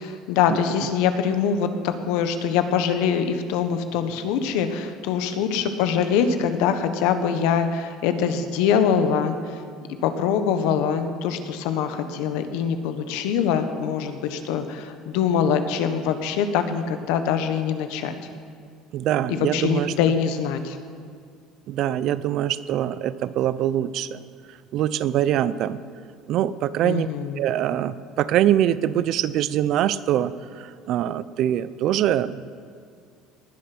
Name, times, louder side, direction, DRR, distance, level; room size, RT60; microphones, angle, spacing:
voice 1, 0.0-9.6 10.0-18.1 19.3-20.8 26.8-27.4, left 7 dB, 80° left, 9 dB, 1.3 m, -23 dB
voice 2, 18.9-19.9 21.7-24.2 24.5-25.8 26.3-27.1 27.3-32.4, right 11 dB, 55° right, 16 dB, 0.5 m, -23 dB
19.5 x 10.5 x 6.1 m, 2.2 s
cardioid pair, 145°, 0 cm